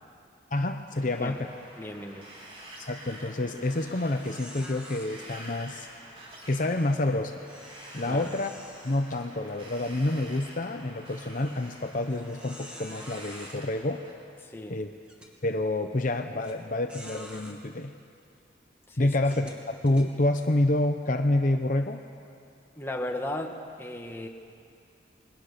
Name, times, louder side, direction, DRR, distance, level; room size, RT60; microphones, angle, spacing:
voice 1, 0.5-1.5 2.9-5.9 6.5-7.3 7.9-8.5 8.8-14.0 14.7-14.9 15.4-17.9 19.0-22.0, left 1 dB, 45° left, 5 dB, 0.9 m, -28 dB
Wind, 0.9-14.1, right 1 dB, 30° right, 3.6 m, -48 dB
voice 2, 1.8-2.3 8.0-8.3 14.4-14.8 18.9-19.1 22.7-24.3, left 1 dB, 15° left, 2 dB, 1.6 m, -35 dB
sound 1, 3.1-3.4 3.8-3.9 4.2-5.1 7.4-9.7 10.2-10.4 11.0-11.1 12.1-13.6 14.4-14.5 15.1-15.3 16.4-16.5 16.9-17.6 18.2-18.4 19.2-20.5, equal, 5° right, 2.4 m, -48 dB
27.0 x 21.5 x 6.8 m, 2.3 s
head